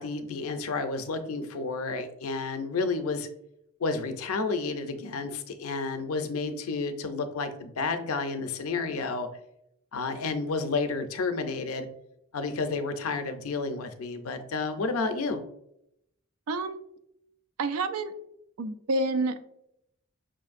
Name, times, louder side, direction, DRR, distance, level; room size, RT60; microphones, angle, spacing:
voice 1, 0.0-3.3 3.8-9.3 9.9-11.9 12.3-15.4, left 4 dB, 75° left, 8 dB, 0.5 m, -31 dB
voice 2, 16.5-16.8 17.6-18.1 18.6-19.4, right 2 dB, 90° right, 11 dB, 0.4 m, -28 dB
5.9 x 2.5 x 2.5 m, 0.77 s
head